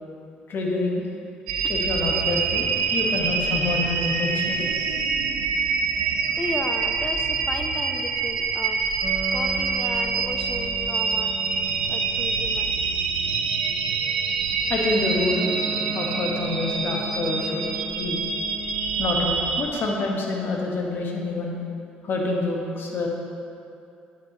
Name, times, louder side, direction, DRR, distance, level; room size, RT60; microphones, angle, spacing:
voice 1, 0.5-1.1 1.7-4.7 14.7-15.5 15.9-17.7 18.0-18.2 19.0-21.6 22.0-23.1, left 2 dB, 50° left, -1 dB, 1.3 m, -27 dB
sound 1, 1.5-19.6, right 5 dB, 85° right, 0.5 m, -26 dB
voice 2, 6.0-8.8 9.3-11.4 11.9-12.7, left 2 dB, 15° left, 5 dB, 0.7 m, -35 dB
sound 2, 9.0-13.0 15.3-19.0, right 1 dB, 30° right, 0.4 m, -36 dB
9.2 x 7.4 x 3.0 m, 2.6 s
hypercardioid pair, 50°, 5 cm